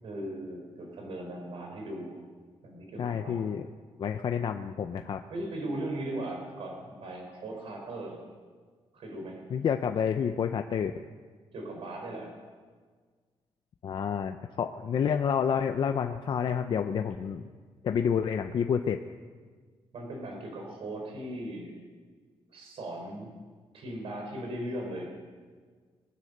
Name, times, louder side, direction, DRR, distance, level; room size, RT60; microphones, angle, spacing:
voice 1, 0.0-2.2 2.6-3.5 5.3-8.2 8.9-9.4 11.5-12.4 19.9-21.7 22.5-23.3 23.7-25.1, right 1 dB, 70° right, 1 dB, 4.3 m, -38 dB
voice 2, 3.0-3.7 4.0-5.2 9.5-10.9 13.8-17.5 17.8-19.0, left 7 dB, 50° left, 6 dB, 0.6 m, -29 dB
22.0 x 9.5 x 6.6 m, 1.5 s
wide cardioid pair, 150°, 10 cm